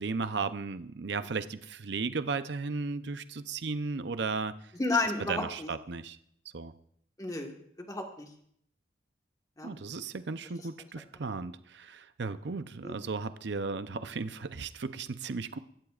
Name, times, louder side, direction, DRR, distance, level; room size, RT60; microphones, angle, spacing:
voice 1, 0.0-4.5 5.3-6.2 6.5-6.7 9.6-15.6, right 4 dB, 60° right, 11 dB, 0.6 m, -35 dB
voice 2, 4.7-5.7 7.2-7.5 7.8-8.3 9.6-9.7 10.8-10.9 12.8-13.0, left 2 dB, 20° left, 2 dB, 1.5 m, -32 dB
24.5 x 13.5 x 2.5 m, 0.70 s
head